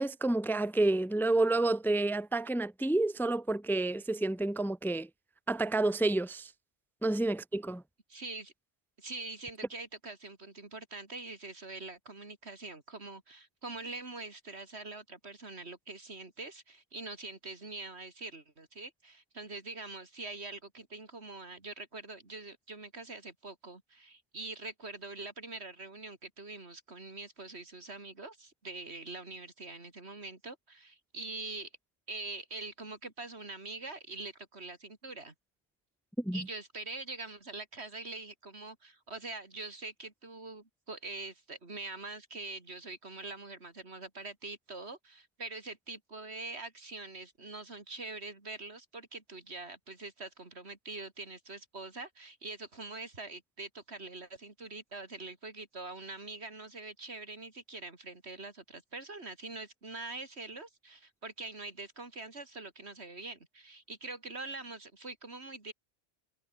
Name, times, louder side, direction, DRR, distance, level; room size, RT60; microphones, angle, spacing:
voice 1, 0.0-5.1 5.5-6.5 7.0-7.8 36.2-36.5, right 2 dB, ahead, 0.6 m, -29 dB
voice 2, 8.1-8.5 9.0-31.7 32.1-35.3 36.3-65.7, right 3 dB, 75° right, 3.7 m, -44 dB
omnidirectional pair, 1.1 m